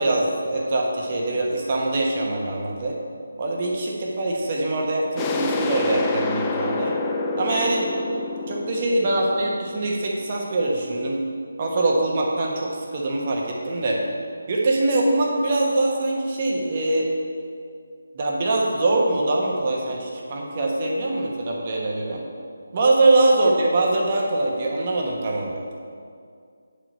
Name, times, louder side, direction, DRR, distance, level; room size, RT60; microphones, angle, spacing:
voice 1, 0.0-3.0 3.4-6.9 7.4-7.9 8.5-11.2 11.6-14.0 14.5-17.1 18.1-22.2 22.7-25.6, right 2 dB, 35° right, -1 dB, 1.2 m, -23 dB
sound 1, 5.2-10.6, left 3 dB, 15° left, 0.4 m, -28 dB
8.5 x 5.2 x 4.4 m, 2.2 s
figure-of-eight pair, 165°, 0 cm